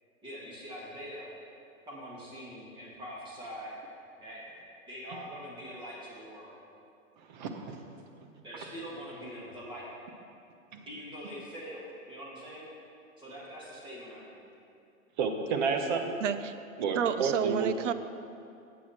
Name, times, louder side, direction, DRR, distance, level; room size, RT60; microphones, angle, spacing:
voice 1, 0.2-1.3 1.8-3.8 4.2-4.4 4.9-6.5 8.4-9.9 10.9-12.7 13.2-14.5, equal, 10° right, -5 dB, 2.0 m, -43 dB
voice 2, 7.3-7.8 10.7-10.8 15.2-16.1 16.8-17.9, right 5 dB, 35° right, 5 dB, 0.9 m, -31 dB
voice 3, 16.2-16.5 16.9-17.9, right 9 dB, 60° right, 12 dB, 0.6 m, -29 dB
10.5 x 8.4 x 4.3 m, 2.5 s
hypercardioid pair, 145°, 41 cm